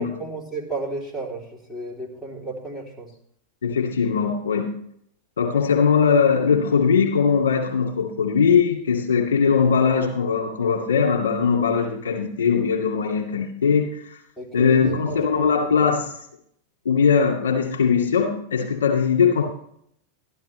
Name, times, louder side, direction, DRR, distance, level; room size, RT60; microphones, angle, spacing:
voice 1, 0.0-3.1 5.4-5.6 14.4-15.7, right 2 dB, 10° left, -3 dB, 3.3 m, -33 dB
voice 2, 3.6-4.7 5.4-14.1 14.5-16.1 16.8-19.4, left 6 dB, 65° left, 0 dB, 2.2 m, -20 dB
13.0 x 12.0 x 3.3 m, 0.69 s
figure-of-eight pair, 90°, 0 cm